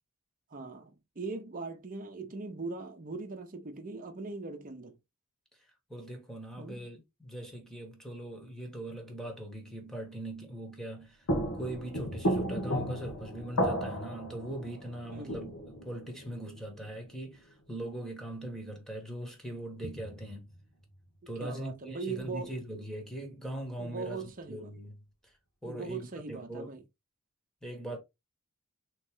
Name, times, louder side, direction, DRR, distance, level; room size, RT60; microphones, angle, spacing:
voice 1, 0.5-5.0 6.6-6.9 15.1-15.4 21.2-22.5 23.8-24.7 25.6-26.8, right 3 dB, 40° right, 0.8 m, -40 dB
voice 2, 5.9-11.2 11.5-20.5 21.3-24.2 24.5-25.0 25.2-25.3 25.6-26.7 27.6-28.0, right 1 dB, ahead, 1.3 m, -41 dB
sound 1, 11.0-11.1 11.3-17.1 19.8-20.6 22.2-22.3, equal, 85° left, 1.2 m, -34 dB
3.8 x 3.1 x 3.6 m
head